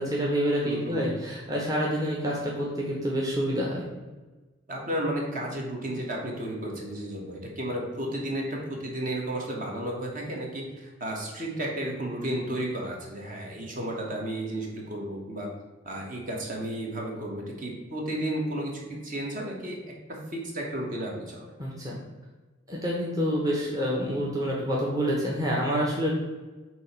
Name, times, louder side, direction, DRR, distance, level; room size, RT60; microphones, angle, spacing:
voice 1, 0.0-3.8 21.6-21.9 22.7-26.1, equal, 20° right, -5 dB, 1.0 m, -27 dB
voice 2, 0.6-1.1 4.7-15.5 15.8-19.8 20.1-21.5, right 1 dB, 40° right, -1 dB, 1.4 m, -33 dB
7.5 x 2.9 x 5.9 m, 1.2 s
head